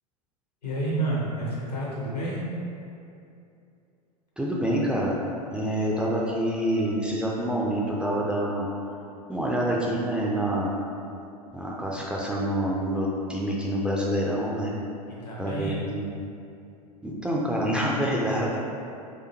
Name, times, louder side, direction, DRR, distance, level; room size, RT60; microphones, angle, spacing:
voice 1, 0.6-2.4 15.2-15.7, right 2 dB, 80° left, -5 dB, 1.1 m, -29 dB
voice 2, 4.4-5.2 5.5-8.7 9.3-10.7 11.5-14.7 15.4-16.0 17.0-18.6, equal, 5° right, -4 dB, 0.3 m, -27 dB
sound 1, 6.0-10.4 10.6-10.7, right 2 dB, 85° right, 1.0 m, -45 dB
4.9 x 2.2 x 3.0 m, 2.6 s
figure-of-eight pair, 90°, 21 cm